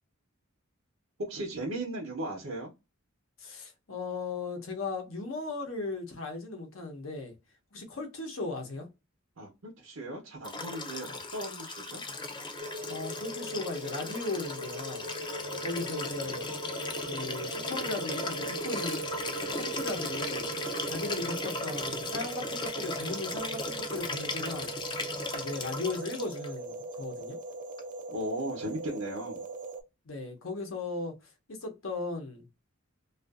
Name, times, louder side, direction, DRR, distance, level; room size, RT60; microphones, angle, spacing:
voice 1, 1.2-2.7 9.4-12.0 28.1-29.5, right 1 dB, 75° right, 0.7 m, -37 dB
voice 2, 3.4-7.3 7.7-8.9 11.1-11.2 12.9-15.1 15.6-16.5 17.1-19.0 19.5-20.5 20.8-24.7 25.3-27.4 30.1-31.2 31.5-32.5, left 3 dB, 80° left, 0.8 m, -37 dB
Liquid, 10.4-26.5 27.8-27.9, left 3 dB, 25° left, 0.4 m, -37 dB
sound 1, 12.6-29.8, right 3 dB, 40° right, 0.4 m, -40 dB
2.6 x 2.4 x 2.3 m
head